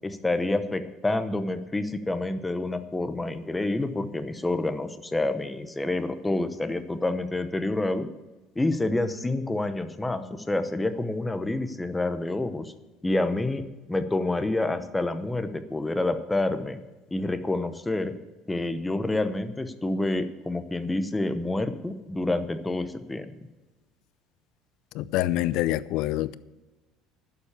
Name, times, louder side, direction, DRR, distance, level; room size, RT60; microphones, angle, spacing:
voice 1, 0.0-8.1 8.6-12.7 13.0-16.8 17.1-18.1 18.5-23.3, left 2 dB, 10° left, 0.9 m, -28 dB
voice 2, 25.0-26.3, left 15 dB, 70° left, 0.5 m, -26 dB
11.5 x 7.4 x 7.0 m
cardioid pair, 125°, 0 cm